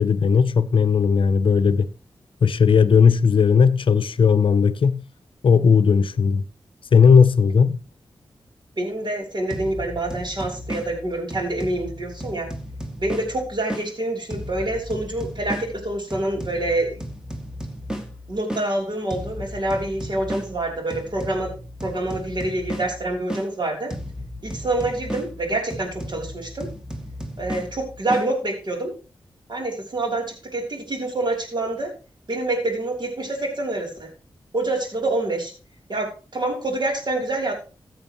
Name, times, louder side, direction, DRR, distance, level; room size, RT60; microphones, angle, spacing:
voice 1, 0.0-1.9 2.4-5.0 5.4-6.4 6.9-7.8, left 6 dB, 70° left, 0.6 m, -16 dB
voice 2, 8.8-12.5 13.0-17.0 18.3-23.9 24.4-26.7 27.4-28.9 29.5-31.9 32.3-34.1 34.5-35.5 35.9-37.5, right 2 dB, 55° right, 3.3 m, -26 dB
sound 1, 9.5-13.9 14.3-18.7 19.1-23.5 23.9-28.3, equal, 5° right, 1.7 m, -34 dB
14.0 x 7.6 x 3.0 m
cardioid pair, 45°, 9 cm